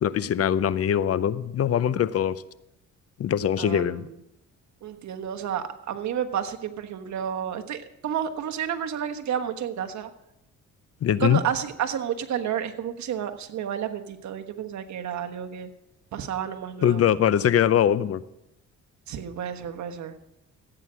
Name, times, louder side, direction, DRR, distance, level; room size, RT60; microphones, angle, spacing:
voice 1, 0.0-2.4 3.2-4.1 11.0-11.4 16.8-18.2, left 9 dB, 50° left, 17 dB, 0.6 m, -22 dB
voice 2, 3.6-4.1 4.8-10.1 11.2-15.7 16.1-17.0 19.1-20.1, right 9 dB, 70° right, 6 dB, 1.3 m, -31 dB
15.0 x 8.9 x 6.2 m, 0.88 s
cardioid pair, 90°, 30 cm